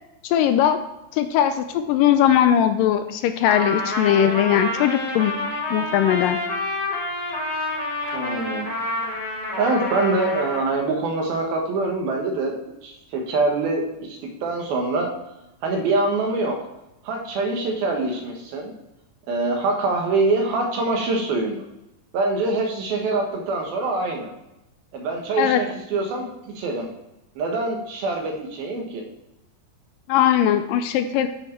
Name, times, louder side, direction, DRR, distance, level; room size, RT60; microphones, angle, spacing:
voice 1, 0.2-0.8 1.1-5.3 5.7-6.4 25.4-25.6 30.1-31.3, left 10 dB, 80° left, 9 dB, 2.1 m, -19 dB
Trumpet, 3.4-10.7, left 2 dB, 20° left, 1.1 m, -28 dB
voice 2, 8.1-8.7 9.6-13.8 14.1-15.1 15.6-16.6 17.0-18.7 19.3-21.6 22.1-24.3 24.9-26.9 27.4-29.0, right 3 dB, 80° right, 2 dB, 3.3 m, -24 dB
12.0 x 6.3 x 4.5 m, 0.93 s
omnidirectional pair, 4.2 m